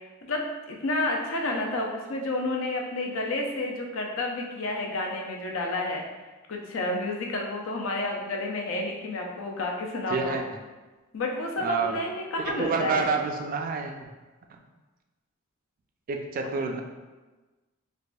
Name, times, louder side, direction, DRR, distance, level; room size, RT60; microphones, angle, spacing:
voice 1, 0.3-6.0 6.5-10.4 11.1-13.1, left 2 dB, 65° left, 1 dB, 0.5 m, -30 dB
voice 2, 10.1-10.4 11.6-12.0 12.3-14.1 16.1-16.8, right 4 dB, 40° right, 4 dB, 0.3 m, -28 dB
4.5 x 2.5 x 2.2 m, 1.2 s
head